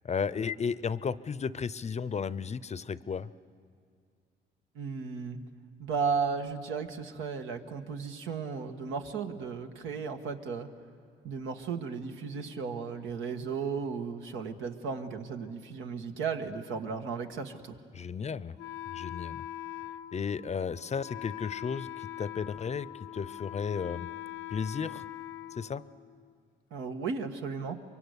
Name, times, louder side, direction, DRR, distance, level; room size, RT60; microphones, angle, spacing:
voice 1, 0.0-3.3 17.9-18.6 18.9-19.4 20.1-24.1 24.5-25.0 25.5-25.8, left 6 dB, 35° left, 17 dB, 0.6 m, -34 dB
voice 2, 4.7-5.4 5.8-10.7 11.2-17.8 26.7-27.8, right 5 dB, 90° right, 5 dB, 1.5 m, -35 dB
Wind instrument woodwind instrument, 18.6-26.3, left 13 dB, 85° left, 0.6 m, -42 dB
24.0 x 23.5 x 8.2 m, 2.1 s
cardioid pair, 90°, 20 cm